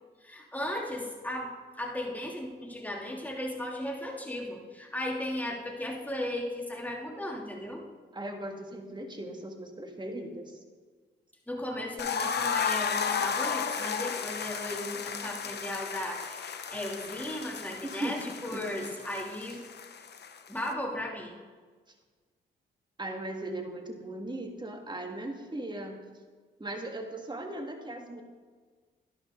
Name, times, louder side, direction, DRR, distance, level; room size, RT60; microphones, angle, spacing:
voice 1, 0.2-7.8 11.5-19.6 20.5-21.3, left 1 dB, 10° left, -1 dB, 2.9 m, -36 dB
voice 2, 8.1-10.6 17.8-18.2 18.5-18.9 23.0-26.0 26.6-28.2, right 1 dB, 20° right, 3 dB, 2.1 m, -38 dB
sound 1, 12.0-20.7, left 6 dB, 55° left, 1.0 m, -34 dB
12.0 x 11.0 x 3.9 m, 1.5 s
supercardioid pair, 50°, 20 cm